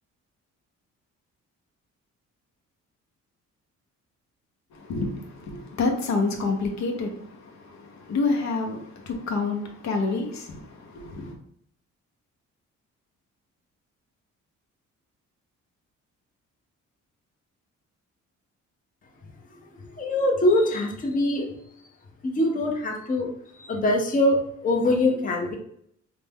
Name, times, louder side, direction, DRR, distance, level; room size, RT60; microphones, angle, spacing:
voice 1, 4.7-11.3, left 3 dB, 65° left, 0.7 m, -28 dB
voice 2, 19.7-21.5 22.2-23.3 23.6-25.6, left 1 dB, 25° left, 0.6 m, -23 dB
2.5 x 2.2 x 3.4 m
cardioid pair, 90°, 30 cm